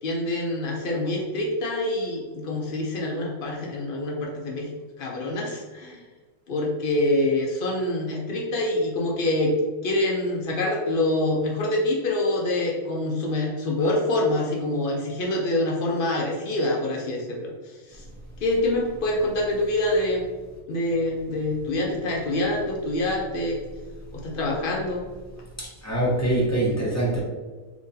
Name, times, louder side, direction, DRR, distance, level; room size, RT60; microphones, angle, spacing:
voice 1, 0.0-4.7 5.0-6.0 6.5-9.5 9.8-17.5 17.9-18.0 18.4-20.2 20.7-23.6 24.1-25.0, left 1 dB, 85° left, -2 dB, 0.4 m, -25 dB
voice 2, 25.6-27.2, right 1 dB, 20° left, -6 dB, 0.5 m, -24 dB
3.7 x 2.9 x 2.7 m, 1.4 s
omnidirectional pair, 1.6 m